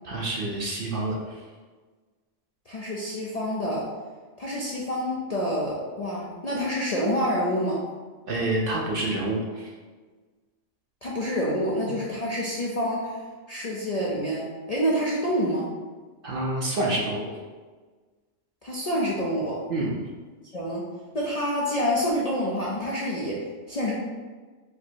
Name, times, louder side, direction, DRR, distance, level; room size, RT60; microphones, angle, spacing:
voice 1, 0.0-1.4 8.3-9.7 16.2-17.3 19.7-20.0, right 2 dB, 55° right, -2 dB, 0.7 m, -28 dB
voice 2, 2.7-3.9 4.4-7.8 11.0-13.2 13.5-15.7 18.6-19.6 20.5-20.9 21.1-23.9, equal, 45° left, -5 dB, 0.5 m, -27 dB
4.9 x 2.0 x 4.3 m, 1.4 s
omnidirectional pair, 1.3 m